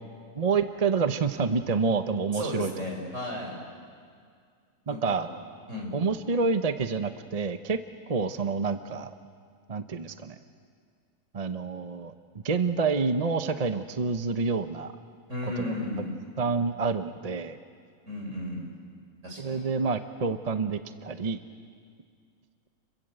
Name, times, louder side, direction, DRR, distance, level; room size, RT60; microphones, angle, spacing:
voice 1, 0.4-2.7 4.9-5.3 5.9-7.8 8.1-9.1 9.7-10.4 11.3-12.1 12.4-14.9 15.6-15.8 16.4-17.6 19.4-21.4, right 4 dB, 35° right, 9 dB, 0.7 m, -28 dB
voice 2, 2.3-3.5 4.9-5.2 5.7-5.9 15.3-16.2 18.1-18.6 19.2-19.6, left 1 dB, 55° right, 0 dB, 6.0 m, -34 dB
30.0 x 23.0 x 7.8 m, 2.1 s
omnidirectional pair, 1.5 m